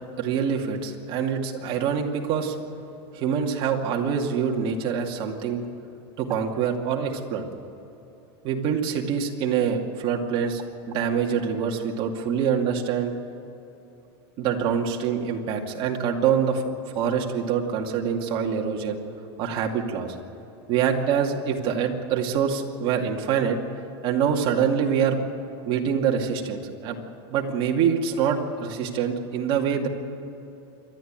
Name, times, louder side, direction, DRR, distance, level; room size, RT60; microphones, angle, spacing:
voice 1, 0.2-2.6 3.1-5.6 6.2-7.4 8.4-13.1 14.4-16.6 16.9-19.0 19.4-20.1 20.7-23.6 24.0-25.2 25.7-27.0 27.3-29.9, right 7 dB, 40° right, 1 dB, 2.4 m, -25 dB
27.5 x 12.5 x 9.0 m, 3.0 s
supercardioid pair, 145°, 13 cm